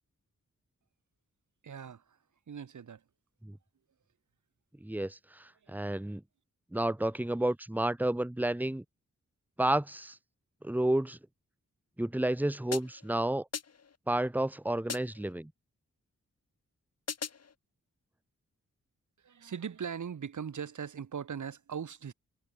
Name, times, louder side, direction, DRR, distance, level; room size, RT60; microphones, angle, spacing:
voice 1, 1.6-2.2 2.5-3.0 19.2-22.1, right 7 dB, 80° right, 2.5 m, -40 dB
voice 2, 4.8-6.2 6.7-8.8 9.6-10.2 10.6-11.2 12.0-13.5 14.1-15.5, right 1 dB, 5° right, 1.6 m, -31 dB
sound 1, 12.7-13.1 13.5-14.0 14.9-15.3 17.1-17.6, left 6 dB, 60° left, 2.3 m, -40 dB
wide cardioid pair, 130°, 30 cm